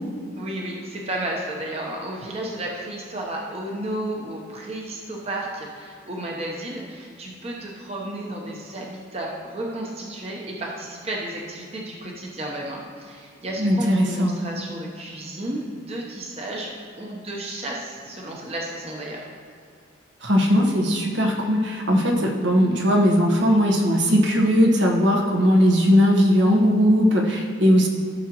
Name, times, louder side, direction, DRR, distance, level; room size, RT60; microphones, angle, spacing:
voice 1, 0.4-19.3, right 1 dB, 30° right, -1 dB, 0.9 m, -32 dB
voice 2, 13.6-14.4 20.2-27.9, equal, 70° right, 0 dB, 1.2 m, -19 dB
14.5 x 6.3 x 3.0 m, 2.3 s
head